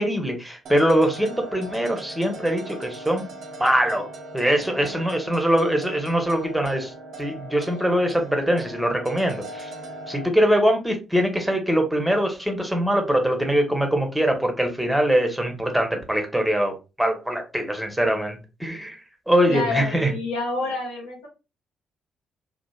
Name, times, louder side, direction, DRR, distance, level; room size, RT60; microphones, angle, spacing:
voice 1, 0.0-3.3 3.6-4.1 4.3-6.9 7.2-9.7 10.1-19.0 19.3-20.1, equal, 5° right, 1.0 m, -22 dB
sound 1, 0.7-10.3, right 1 dB, 60° right, 0.6 m, -39 dB
voice 2, 4.5-5.0 19.5-21.3, left 3 dB, 80° left, 1.1 m, -29 dB
2.9 x 2.4 x 2.3 m
hypercardioid pair, 45°, 0 cm